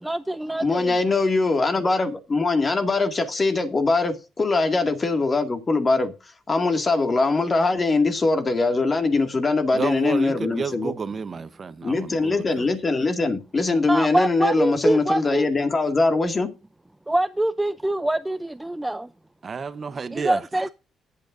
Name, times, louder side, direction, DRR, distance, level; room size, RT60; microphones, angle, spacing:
voice 1, 0.0-1.0 13.9-15.5 17.1-19.1 20.1-20.7, right 1 dB, 10° right, 0.5 m, -24 dB
voice 2, 0.6-6.1 6.5-10.9 11.8-16.5, left 3 dB, 30° left, 2.1 m, -22 dB
voice 3, 9.7-12.7 19.4-20.4, right 5 dB, 40° right, 0.9 m, -31 dB
18.5 x 8.8 x 2.6 m
cardioid pair, 90°, 0 cm